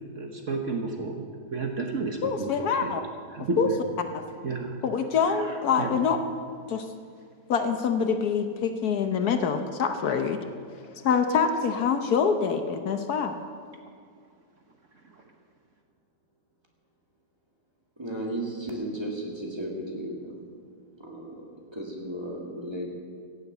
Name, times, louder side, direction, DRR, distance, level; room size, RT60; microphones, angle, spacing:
voice 1, 0.2-2.3 2.8-2.9 3.3-3.7 4.4-4.8 5.3-5.4 5.8-6.0, right 3 dB, 50° right, 3 dB, 1.4 m, -31 dB
voice 2, 2.2-3.0 3.6-3.7 4.1-4.2 4.8-6.2 6.7-6.8 7.5-10.4 11.0-13.3, left 6 dB, 65° left, 7 dB, 1.2 m, -25 dB
voice 3, 18.0-20.5 21.0-21.4 21.7-22.9, right 1 dB, 15° right, -1 dB, 2.3 m, -34 dB
16.0 x 8.2 x 8.2 m, 2.1 s
omnidirectional pair, 1.8 m